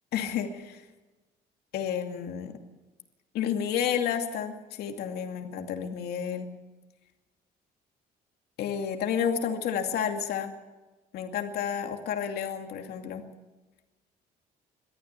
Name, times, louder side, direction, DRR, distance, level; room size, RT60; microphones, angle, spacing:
voice 1, 0.1-0.8 1.7-2.5 3.3-6.5 8.6-10.5 11.1-13.2, left 8 dB, 75° left, 4 dB, 2.5 m, -31 dB
22.5 x 14.0 x 8.4 m, 1.1 s
cardioid pair, 110°, 17 cm